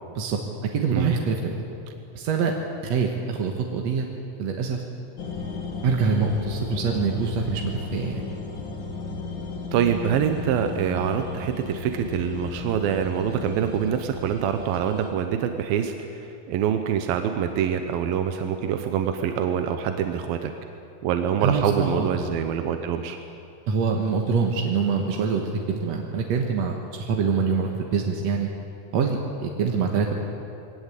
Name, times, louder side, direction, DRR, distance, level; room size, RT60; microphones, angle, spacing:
voice 1, 0.7-1.6 2.1-2.5 2.8-4.0 4.4-4.8 5.8-8.2 21.4-22.1 23.7-28.5 28.9-30.1, right 5 dB, 60° right, 1 dB, 2.2 m, -25 dB
sound 1, 5.2-15.1, left 4 dB, 40° left, 2.0 m, -35 dB
voice 2, 9.7-15.9 16.5-20.5 21.0-23.2, right 8 dB, 85° right, 7 dB, 2.8 m, -25 dB
22.5 x 18.0 x 8.3 m, 2.6 s
omnidirectional pair, 4.1 m